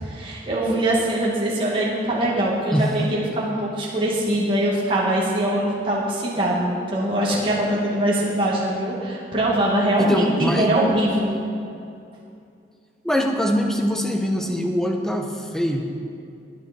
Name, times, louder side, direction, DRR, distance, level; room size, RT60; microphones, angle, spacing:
voice 1, 0.1-11.3, right 1 dB, 30° right, -6 dB, 2.4 m, -22 dB
voice 2, 10.0-10.7 13.0-15.9, equal, 5° left, 2 dB, 1.0 m, -23 dB
20.5 x 9.3 x 4.5 m, 2.5 s
head